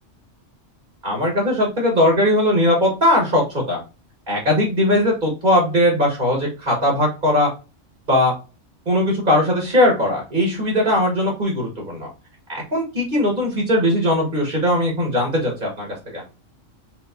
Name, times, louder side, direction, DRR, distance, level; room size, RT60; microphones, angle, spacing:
voice 1, 1.0-3.8 4.3-7.5 8.1-8.3 8.8-12.1 12.5-16.2, left 1 dB, 40° right, 0 dB, 1.6 m, -19 dB
4.0 x 3.7 x 2.7 m, 0.31 s
omnidirectional pair, 1.3 m